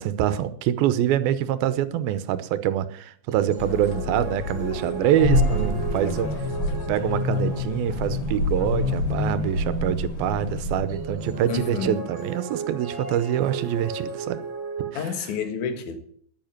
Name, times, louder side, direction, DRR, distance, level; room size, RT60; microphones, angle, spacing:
voice 1, 0.0-6.3 6.7-14.4 14.9-15.3, right 11 dB, 85° right, 2.7 m, -25 dB
sound 1, 3.3-8.3 10.9-14.9, right 5 dB, 40° right, 2.5 m, -35 dB
sound 2, 3.6-10.7, left 10 dB, 80° left, 2.7 m, -37 dB
sound 3, 5.2-11.7, left 2 dB, 40° left, 3.8 m, -26 dB
voice 2, 11.5-12.0 15.0-16.0, left 6 dB, 60° left, 2.8 m, -29 dB
10.5 x 9.8 x 8.8 m
omnidirectional pair, 4.3 m